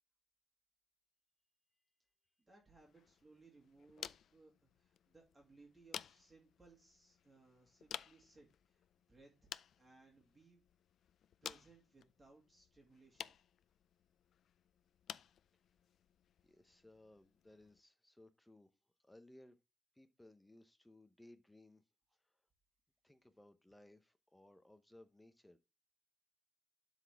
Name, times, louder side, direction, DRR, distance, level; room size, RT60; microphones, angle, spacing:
voice 1, 2.4-10.6 11.4-13.4, right 3 dB, 20° right, 2.3 m, -65 dB
sound 1, 2.8-17.8, left 9 dB, 70° left, 0.3 m, -54 dB
voice 2, 16.4-19.6 19.9-21.8 22.2-22.4 23.0-25.6, left 1 dB, 5° left, 0.7 m, -63 dB
12.0 x 4.1 x 3.3 m
wide cardioid pair, 145°, 0 cm